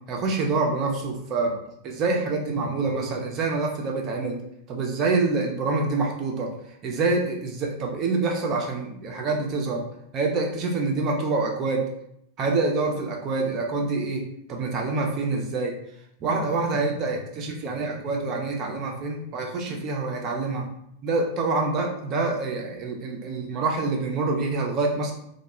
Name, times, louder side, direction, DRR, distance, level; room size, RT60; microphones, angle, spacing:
voice 1, 0.1-1.5 1.8-4.4 4.7-6.5 6.8-9.8 10.1-11.9 12.4-15.8 16.2-20.7 21.0-25.1, right 3 dB, 35° right, 1 dB, 0.6 m, -26 dB
2.3 x 2.1 x 3.0 m, 0.75 s
figure-of-eight pair, 90°, 0 cm